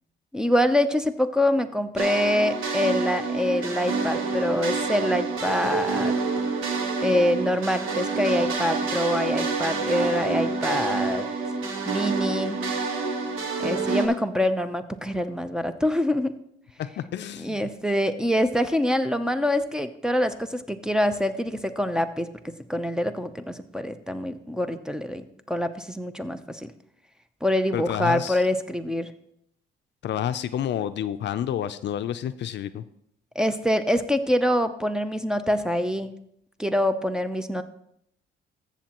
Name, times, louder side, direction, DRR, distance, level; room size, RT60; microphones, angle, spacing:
voice 1, 0.3-6.1 7.0-11.2 11.9-12.6 13.6-16.3 17.4-22.3 22.7-26.7 27.4-29.1 33.4-36.1 36.6-37.6, left 1 dB, 5° right, 9 dB, 0.6 m, -25 dB
sound 1, 2.0-14.1, right 4 dB, 85° right, 1.4 m, -27 dB
voice 2, 16.8-17.7 27.7-28.4 30.0-32.8, left 10 dB, 60° left, 12 dB, 0.5 m, -29 dB
14.5 x 7.2 x 3.0 m, 0.74 s
cardioid pair, 90°, 20 cm